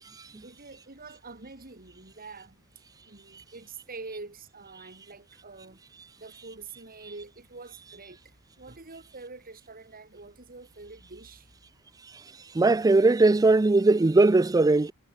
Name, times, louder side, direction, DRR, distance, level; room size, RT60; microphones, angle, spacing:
voice 1, 0.4-2.6 3.0-5.8 6.2-11.5, right 3 dB, 40° right, 3.0 m, -45 dB
voice 2, 12.5-14.9, right 2 dB, 15° right, 0.4 m, -20 dB
head